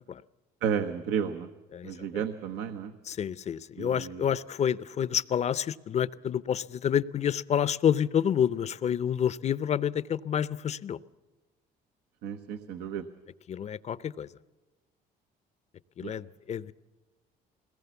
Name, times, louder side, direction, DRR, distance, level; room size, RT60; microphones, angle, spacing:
voice 1, 0.6-1.5 1.8-2.9 3.8-4.2 12.2-13.0 16.0-16.1, right 8 dB, 90° right, 8 dB, 1.0 m, -32 dB
voice 2, 1.7-2.2 3.1-11.0 13.5-14.3 16.0-16.7, left 9 dB, 40° left, 18 dB, 0.6 m, -29 dB
21.0 x 19.0 x 7.0 m, 1.2 s
cardioid pair, 110°, 17 cm